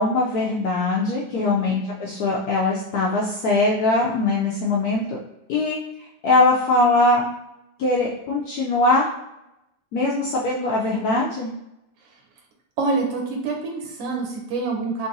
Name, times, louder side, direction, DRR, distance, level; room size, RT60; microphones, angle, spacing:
voice 1, 0.0-5.2 5.5-7.3 7.8-9.1 9.9-11.5, left 2 dB, 70° left, -3 dB, 0.9 m, -21 dB
voice 2, 1.3-1.8 12.0-12.1 12.8-15.1, right 3 dB, 90° right, 1 dB, 1.5 m, -27 dB
3.8 x 2.6 x 2.6 m, 0.89 s
omnidirectional pair, 2.0 m